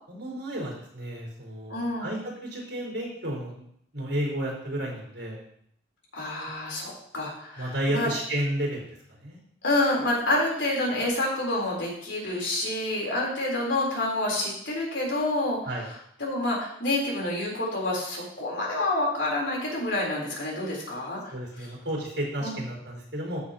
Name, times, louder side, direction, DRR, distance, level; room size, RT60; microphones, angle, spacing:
voice 1, 0.1-3.6 3.9-5.4 7.6-9.4 15.6-15.8 21.3-23.4, right 1 dB, 65° right, -3 dB, 4.6 m, -32 dB
voice 2, 1.7-2.1 6.1-8.1 9.6-15.6 16.2-21.3 22.4-22.6, left 1 dB, 85° left, -3 dB, 3.9 m, -28 dB
14.5 x 7.2 x 3.0 m, 0.69 s
head